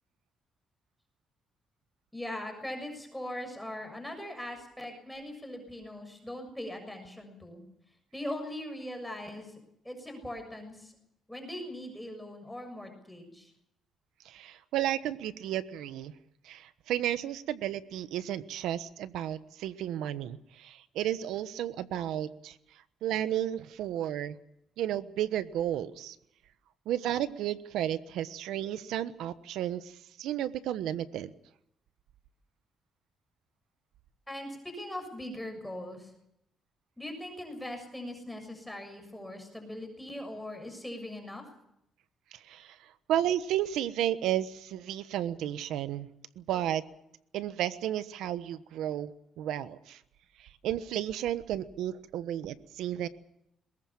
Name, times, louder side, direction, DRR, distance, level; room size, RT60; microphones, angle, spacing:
voice 1, 2.1-7.6 8.1-9.6 9.8-10.9 11.3-13.5 34.3-36.1 37.0-41.4, left 1 dB, 5° left, 4 dB, 6.9 m, -40 dB
voice 2, 14.2-16.1 16.4-22.5 23.0-24.4 24.8-26.1 26.9-31.3 42.5-42.8 43.1-46.1 46.4-46.8 47.3-49.1 49.4-50.0 50.6-53.1, right 11 dB, 85° right, 13 dB, 1.2 m, -32 dB
22.5 x 21.0 x 7.3 m, 0.78 s
cardioid pair, 90°, 0 cm